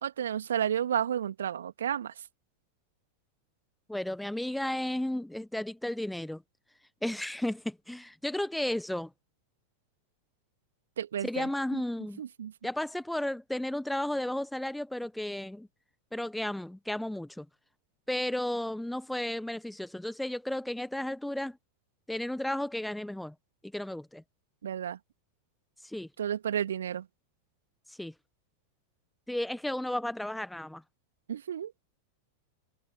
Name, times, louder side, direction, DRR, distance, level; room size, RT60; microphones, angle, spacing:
voice 1, 0.0-2.2 11.0-11.8 12.2-12.5 24.6-25.0 26.2-27.1 31.3-31.7, right 9 dB, 65° right, 2.7 m, -32 dB
voice 2, 3.9-6.4 7.0-9.1 11.2-12.2 12.6-15.7 16.1-17.5 18.1-21.6 22.1-23.3 23.6-24.2 25.8-26.1 27.9-28.1 29.3-30.8, left 1 dB, 5° left, 1.2 m, -33 dB
figure-of-eight pair, 90°, 0 cm